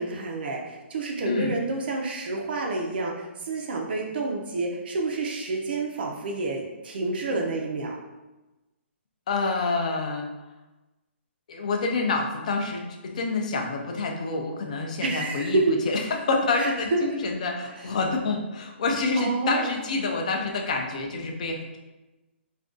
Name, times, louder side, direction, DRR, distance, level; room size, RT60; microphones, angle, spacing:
voice 1, 0.0-8.0 15.0-15.8 16.6-17.1 19.1-19.7, right 3 dB, 50° right, 0 dB, 0.4 m, -28 dB
voice 2, 9.3-10.3 11.5-15.6 15.9-16.0 16.3-21.8, left 3 dB, 35° left, 2 dB, 0.3 m, -27 dB
2.5 x 2.2 x 3.6 m, 1.1 s
hypercardioid pair, 180°, 7 cm